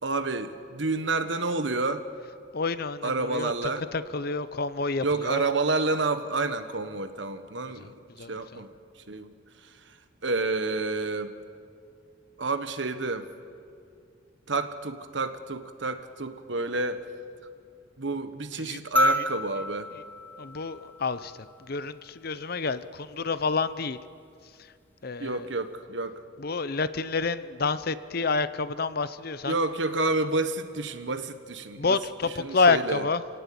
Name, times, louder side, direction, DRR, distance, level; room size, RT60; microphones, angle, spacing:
voice 1, 0.0-2.0 3.0-3.8 5.0-8.7 9.1-9.3 10.2-11.3 12.4-13.3 14.5-17.0 18.0-19.9 25.2-26.2 29.4-32.0 32.4-33.1, right 3 dB, 70° right, 10 dB, 1.4 m, -29 dB
voice 2, 2.5-3.5 3.9-5.4 8.2-8.6 18.6-18.8 20.4-21.3 21.7-24.0 25.0-25.5 26.4-29.6 31.8-33.2, left 4 dB, 50° left, 14 dB, 0.7 m, -28 dB
sound 1, 19.0-21.5 23.1-23.2, left 1 dB, 10° left, 0.9 m, -29 dB
27.0 x 17.5 x 8.7 m, 2.4 s
head